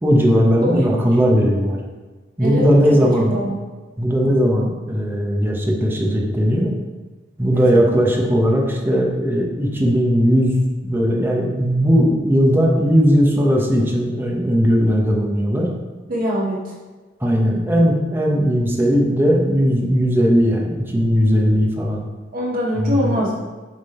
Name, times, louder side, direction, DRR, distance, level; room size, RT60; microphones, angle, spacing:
voice 1, 0.0-1.8 2.4-3.4 4.0-6.7 7.4-10.6 10.8-15.7 17.2-22.1 22.8-23.2, equal, 10° right, -2 dB, 0.9 m, -17 dB
voice 2, 2.4-3.6 7.5-8.0 16.1-16.7 22.3-23.3, equal, 50° right, -6 dB, 1.8 m, -23 dB
7.2 x 3.7 x 4.3 m, 1.3 s
head